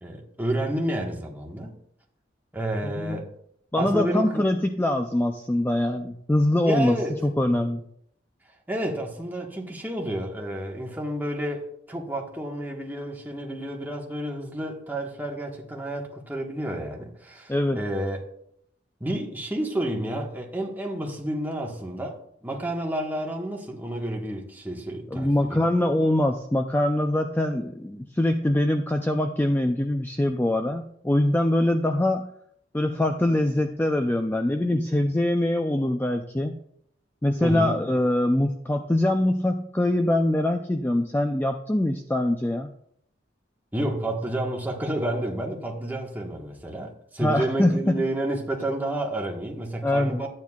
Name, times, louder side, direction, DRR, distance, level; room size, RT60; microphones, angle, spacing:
voice 1, 0.0-1.8 2.5-3.3 3.8-4.5 6.6-7.2 8.7-18.2 19.0-25.7 37.4-37.8 43.7-50.3, right 1 dB, 10° right, 1.3 m, -30 dB
voice 2, 2.8-3.2 3.7-7.0 7.2-7.8 17.5-17.8 25.1-32.3 32.7-36.6 37.2-42.7 47.2-48.0 49.8-50.2, left 1 dB, 10° left, 0.4 m, -23 dB
13.0 x 9.2 x 2.4 m
head